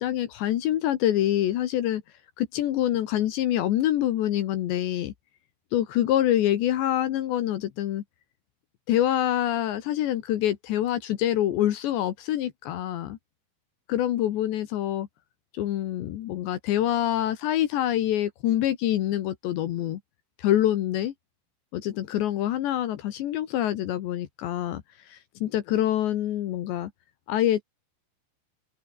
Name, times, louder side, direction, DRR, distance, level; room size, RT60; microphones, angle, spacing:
voice 1, 0.0-2.0 2.4-5.1 5.7-8.0 8.9-13.2 13.9-15.1 15.5-20.0 20.4-21.1 21.7-24.8 25.1-26.9 27.3-27.6, left 12 dB, 70° left, 3.4 m, -26 dB
open air
omnidirectional pair, 5.8 m